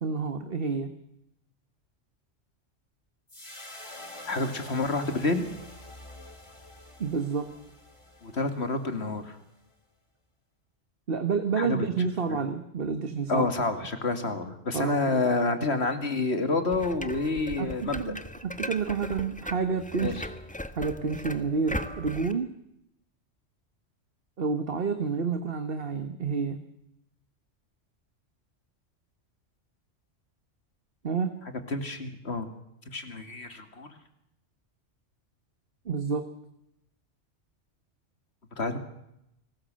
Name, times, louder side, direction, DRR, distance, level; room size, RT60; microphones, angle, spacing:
voice 1, 0.0-0.9 7.0-7.5 11.1-13.5 14.7-15.3 15.6-15.8 17.6-20.2 20.8-22.5 24.4-26.6 31.0-31.4 35.8-36.3, right 5 dB, 50° right, 9 dB, 1.5 m, -29 dB
sound 1, 3.3-9.7, left 1 dB, 25° left, 3.4 m, -47 dB
voice 2, 4.2-5.5 8.2-9.4 11.6-11.9 12.3-12.4 13.3-18.1 20.0-20.2 31.7-32.5 32.9-34.0 38.6-38.8, left 3 dB, 60° left, 8 dB, 2.5 m, -28 dB
sound 2, 16.7-22.3, equal, 5° left, 1.2 m, -38 dB
29.0 x 19.5 x 7.7 m, 0.84 s
omnidirectional pair, 1.3 m